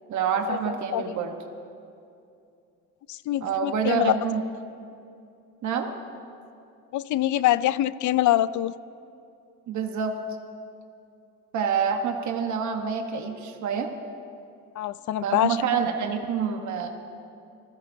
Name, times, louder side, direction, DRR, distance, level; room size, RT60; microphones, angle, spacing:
voice 1, 0.1-1.3 3.4-4.4 5.6-5.9 9.7-10.1 11.5-13.9 15.2-16.9, right 6 dB, 70° right, 3 dB, 1.2 m, -27 dB
voice 2, 3.1-4.1 6.9-8.7 14.8-15.6, left 14 dB, 75° left, 17 dB, 0.5 m, -24 dB
26.5 x 15.5 x 2.7 m, 2.6 s
cardioid pair, 90°, 30 cm